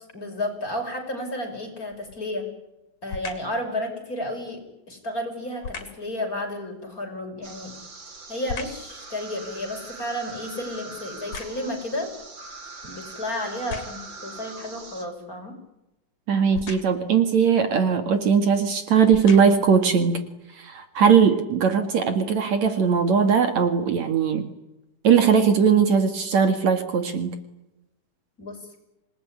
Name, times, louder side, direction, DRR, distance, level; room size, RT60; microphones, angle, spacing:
voice 1, 0.1-2.5 3.0-4.6 4.9-7.7 8.3-12.1 12.8-15.5 28.4-28.8, left 1 dB, 25° left, 4 dB, 6.5 m, -32 dB
sound 1, 1.9-2.3 3.1-3.6 5.6-6.1 7.5-8.9 9.4-11.9 12.6-12.7 13.4-14.2 16.5-17.1 18.1-18.3 18.9-19.8 20.4-20.5, left 4 dB, 55° left, 4.3 m, -38 dB
sound 2, 7.4-15.1, right 3 dB, 35° right, 3.9 m, -42 dB
voice 2, 16.3-20.2 20.5-24.5 25.0-27.4, right 6 dB, 60° right, 8 dB, 3.1 m, -20 dB
28.0 x 20.0 x 10.0 m, 0.93 s
omnidirectional pair, 3.7 m